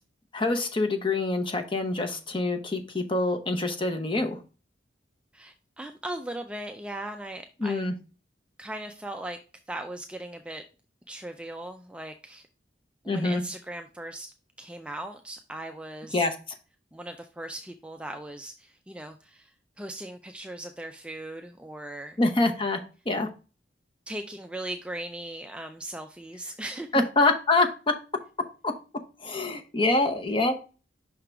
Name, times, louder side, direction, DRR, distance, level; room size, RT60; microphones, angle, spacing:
voice 1, 0.3-4.4 7.6-7.9 13.1-13.4 16.1-16.3 22.2-23.3 26.9-27.7 28.6-28.7 29.2-30.5, left 2 dB, 30° left, 5 dB, 0.9 m, -25 dB
voice 2, 5.3-7.9 8.6-9.4 9.7-10.7 11.1-12.5 13.0-16.3 16.9-19.5 19.8-22.2 24.1-27.0, right 1 dB, 5° right, 5 dB, 0.3 m, -38 dB
5.8 x 3.8 x 4.4 m, 0.33 s
head